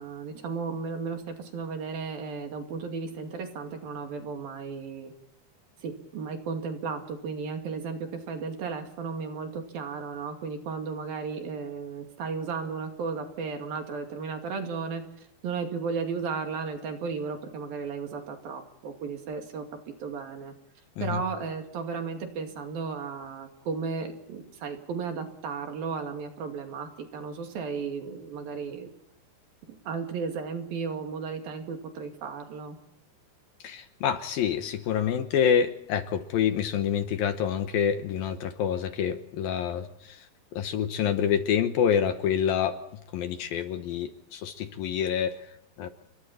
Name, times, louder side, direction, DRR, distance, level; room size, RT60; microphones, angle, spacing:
voice 1, 0.0-5.1 5.8-15.0 15.4-19.7 20.0-20.5 21.0-28.9 29.9-32.8, right 5 dB, 60° right, 5 dB, 4.0 m, -34 dB
voice 2, 33.6-40.3 40.5-45.9, left 8 dB, 70° left, 9 dB, 2.6 m, -27 dB
29.5 x 22.5 x 4.3 m, 0.78 s
omnidirectional pair, 4.9 m